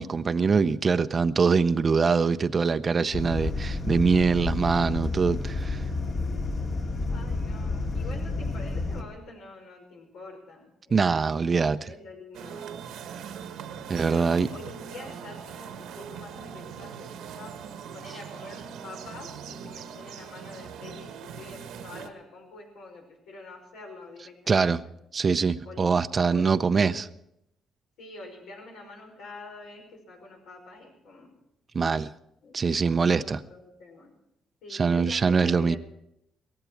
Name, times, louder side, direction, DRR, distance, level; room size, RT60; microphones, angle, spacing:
voice 1, 0.0-5.8 10.9-11.9 13.9-14.5 24.5-24.8 25.1-27.1 31.7-32.1 32.5-33.4 34.7-35.8, right 5 dB, 35° right, 0.5 m, -23 dB
sound 1, 3.1-9.0, left 3 dB, 45° left, 2.0 m, -30 dB
voice 2, 6.3-11.3 11.5-12.6 14.0-17.5 17.9-24.8 25.6-26.0 26.3-27.0 28.0-31.3 32.4-32.6 33.0-34.1 34.6-35.8, left 3 dB, 85° left, 5.4 m, -46 dB
sound 2, 12.3-22.1, right 7 dB, 85° right, 1.2 m, -41 dB
17.5 x 15.0 x 4.6 m
cardioid pair, 115°, 0 cm